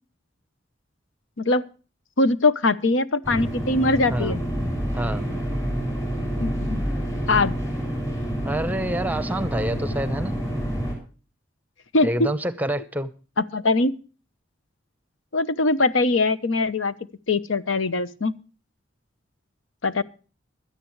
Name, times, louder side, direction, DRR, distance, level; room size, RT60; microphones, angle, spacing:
voice 1, 2.2-4.4 6.4-6.8 7.3-7.6 11.9-12.1 13.5-13.9 15.3-16.9 17.3-18.3 19.8-20.0, left 3 dB, 85° left, 0.9 m, -22 dB
sound 1, 3.2-10.9, equal, 15° left, 6.4 m, -28 dB
voice 2, 4.1-4.4 4.9-5.3 8.4-10.3 12.0-13.1, right 1 dB, 10° right, 0.9 m, -27 dB
17.0 x 12.5 x 3.2 m
head